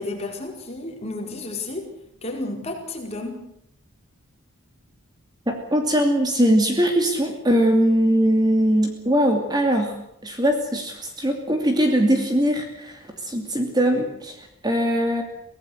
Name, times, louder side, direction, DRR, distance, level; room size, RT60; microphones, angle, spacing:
voice 1, 0.0-1.9 2.2-3.4, left 2 dB, 30° left, 2 dB, 4.7 m, -32 dB
voice 2, 5.5-9.9 10.2-15.2, equal, 20° right, 4 dB, 2.7 m, -21 dB
24.5 x 18.0 x 8.0 m, 0.72 s
head